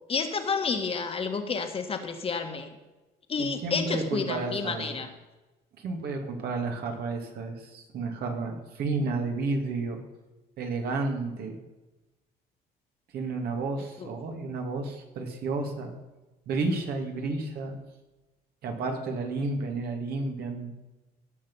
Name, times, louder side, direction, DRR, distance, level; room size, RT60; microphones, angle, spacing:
voice 1, 0.1-2.7 3.3-5.1 14.0-14.1, left 5 dB, 35° left, 6 dB, 1.6 m, -30 dB
voice 2, 3.4-5.0 5.8-10.0 10.6-11.6 13.1-15.9 16.5-17.7 18.6-20.7, right 3 dB, 70° right, 3 dB, 2.5 m, -31 dB
17.0 x 6.3 x 5.6 m, 1.1 s
cardioid pair, 110°, 17 cm